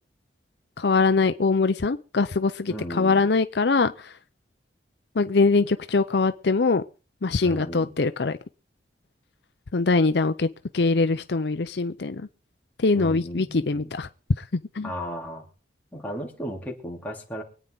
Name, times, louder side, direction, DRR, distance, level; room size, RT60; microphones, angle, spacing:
voice 1, 0.8-3.9 5.2-6.8 7.2-8.4 9.7-10.5 10.7-12.2 12.8-14.1 14.8-14.9, left 3 dB, 60° left, 10 dB, 0.6 m, -22 dB
voice 2, 2.7-3.2 7.4-7.9 12.9-13.9 14.8-15.5 15.9-17.4, equal, 10° left, -2 dB, 3.2 m, -35 dB
24.0 x 9.2 x 4.0 m, 0.36 s
head